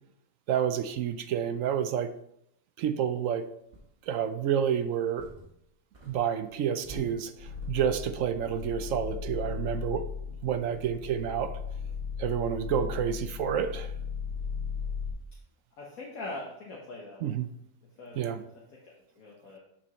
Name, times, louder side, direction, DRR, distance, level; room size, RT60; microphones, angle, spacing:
voice 1, 0.5-2.1 2.8-3.5 4.1-5.3 6.1-10.0 10.4-11.5 12.2-13.9 17.2-17.5 18.2-18.4, right 8 dB, 70° right, 9 dB, 0.9 m, -29 dB
sound 1, 3.1-3.2 3.7-4.3 4.8-5.7 5.9-7.9, right 1 dB, 40° right, 1.6 m, -49 dB
sound 2, 7.4-15.1, left 6 dB, 40° left, 1.9 m, -37 dB
voice 2, 15.8-17.3 18.0-18.2 18.8-19.6, left 2 dB, 70° left, -3 dB, 1.7 m, -42 dB
8.3 x 6.9 x 3.1 m, 0.75 s
omnidirectional pair, 1.6 m